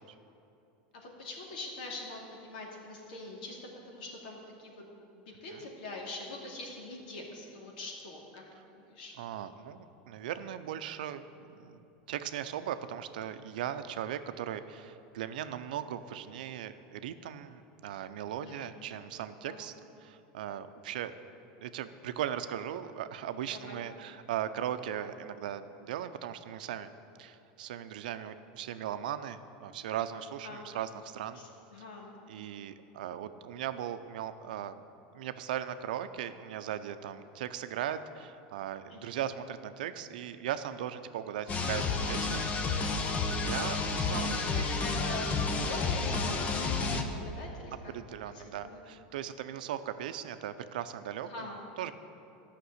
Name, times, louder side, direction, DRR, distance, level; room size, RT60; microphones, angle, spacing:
voice 1, 0.9-3.6 3.8-8.4 8.7-9.1 18.3-18.6 19.4-19.6 23.5-23.8 30.4-30.7 31.3-32.1 38.9-39.2 44.1-44.4 44.8-47.9 48.3-48.8 51.2-51.6, left 2 dB, 80° left, -1 dB, 2.5 m, -43 dB
voice 2, 9.2-11.8 12.1-19.7 20.0-21.1 21.6-26.9 27.2-31.4 32.3-34.8 35.1-42.5 42.7-42.9 43.4-44.6 47.9-51.5 51.8-51.9, right 10 dB, 85° right, 11 dB, 0.6 m, -38 dB
sound 1, 41.5-47.0, left 4 dB, 30° left, 1.0 m, -31 dB
11.5 x 5.9 x 8.0 m, 2.9 s
supercardioid pair, 120°, 5 cm